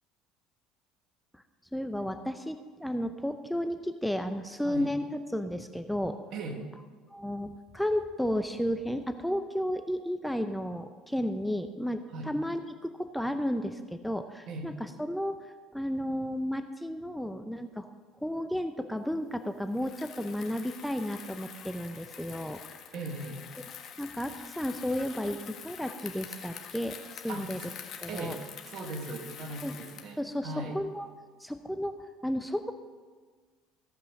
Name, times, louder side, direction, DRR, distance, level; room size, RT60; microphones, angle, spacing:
voice 1, 1.7-6.2 7.1-15.5 15.7-17.9 18.2-22.6 24.0-27.0 27.2-27.6 28.0-28.4 29.6-29.8 30.2-31.1 31.4-31.9 32.2-32.7, equal, ahead, 8 dB, 0.6 m, -33 dB
voice 2, 6.3-6.9 12.1-12.3 14.5-14.8 22.9-23.4 27.3-27.5 28.1-30.8, right 2 dB, 55° right, 4 dB, 1.9 m, -39 dB
Bicycle, 19.7-30.2, left 8 dB, 50° left, 1.5 m, -46 dB
16.0 x 5.5 x 6.4 m, 1.5 s
supercardioid pair, 85°, 0 cm